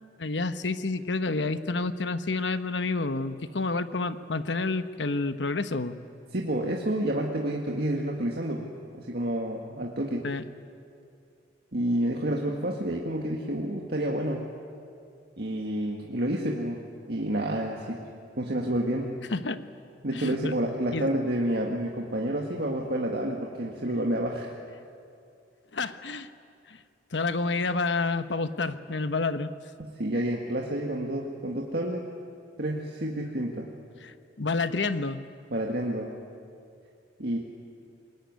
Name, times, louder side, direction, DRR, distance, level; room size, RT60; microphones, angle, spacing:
voice 1, 0.2-6.0 10.2-10.4 19.3-19.6 20.1-20.5 20.9-21.1 25.7-26.3 26.7-26.8 27.1-29.5 34.0-35.2, left 3 dB, 85° left, 11 dB, 1.1 m, -29 dB
voice 2, 6.3-8.7 9.0-10.3 11.7-14.5 15.4-16.8 17.1-18.0 18.4-19.2 20.0-24.5 29.8-32.0 32.6-33.7 35.5-36.1 37.2-37.4, right 1 dB, 60° right, -1 dB, 2.0 m, -29 dB
25.5 x 21.5 x 9.6 m, 2.4 s
head